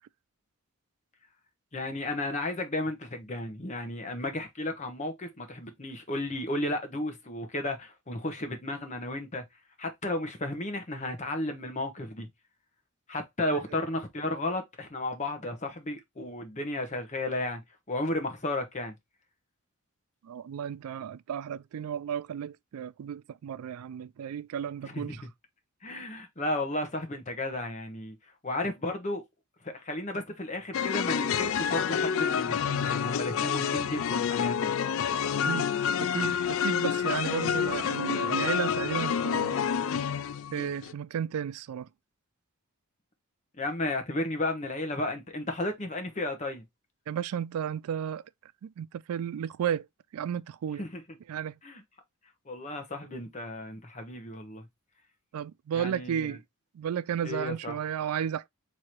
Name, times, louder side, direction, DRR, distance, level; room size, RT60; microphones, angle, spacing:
voice 1, 1.7-9.4 9.8-12.3 13.1-17.6 17.9-19.0 24.8-25.3 25.8-28.2 28.4-29.2 29.6-34.7 43.6-46.6 50.8-51.2 51.6-51.8 52.5-54.6 55.7-56.4 57.2-57.8, left 1 dB, 35° left, 1.0 m, -33 dB
voice 2, 20.2-25.2 35.5-35.7 36.0-39.7 40.5-41.9 47.1-48.2 48.6-49.9 50.1-50.8 51.3-51.5 55.3-56.4 56.7-58.5, right 8 dB, 85° right, 0.3 m, -33 dB
sound 1, 30.7-40.9, left 7 dB, 65° left, 0.3 m, -28 dB
3.6 x 3.2 x 4.4 m
head